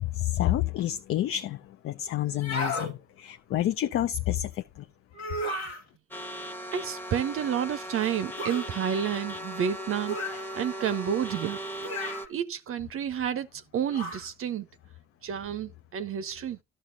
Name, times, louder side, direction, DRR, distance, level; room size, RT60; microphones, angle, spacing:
voice 1, 0.0-4.9, left 13 dB, 45° left, 0.5 m, -29 dB
sound 1, 2.3-2.9 5.1-5.8 8.4-8.7 10.1-10.5 11.8-12.3 13.9-14.3, left 1 dB, 85° left, 1.6 m, -33 dB
sound 2, 6.1-12.3, equal, 5° left, 1.1 m, -38 dB
voice 2, 6.7-10.2 10.5-11.6 12.3-14.7 15.2-16.6, right 9 dB, 45° right, 0.6 m, -30 dB
13.0 x 6.4 x 2.6 m
figure-of-eight pair, 40°, 31 cm